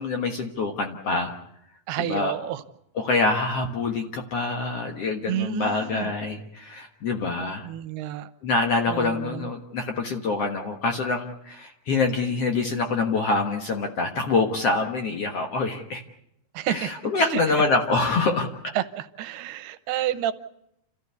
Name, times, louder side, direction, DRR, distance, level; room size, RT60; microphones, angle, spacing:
voice 1, 0.0-1.3 2.0-2.3 3.0-7.7 8.4-16.0 16.7-18.5, left 3 dB, 55° left, 4 dB, 1.8 m, -25 dB
voice 2, 1.9-2.6 5.3-6.1 7.6-8.3 8.9-9.5 16.5-16.9 17.3-17.4 18.8-20.3, right 12 dB, 90° right, 12 dB, 3.0 m, -29 dB
28.5 x 14.5 x 8.2 m, 0.78 s
omnidirectional pair, 4.4 m